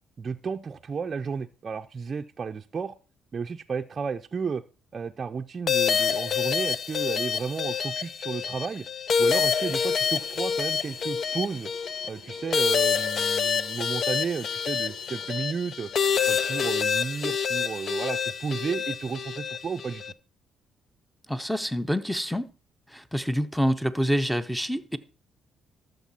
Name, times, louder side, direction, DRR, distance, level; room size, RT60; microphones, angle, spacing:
voice 1, 0.2-2.9 3.3-4.6 4.9-8.9 9.2-11.7 12.0-15.9 16.3-20.1, right 5 dB, 40° right, 0.5 m, -33 dB
sound 1, 5.7-20.1, left 7 dB, 55° left, 0.5 m, -27 dB
sound 2, 7.7-7.8 8.1-17.2 17.5-17.6, left 2 dB, 85° left, 1.7 m, -54 dB
voice 2, 21.3-22.5 22.9-25.0, equal, ahead, 0.8 m, -27 dB
13.0 x 6.7 x 4.2 m
cardioid pair, 90°, 0 cm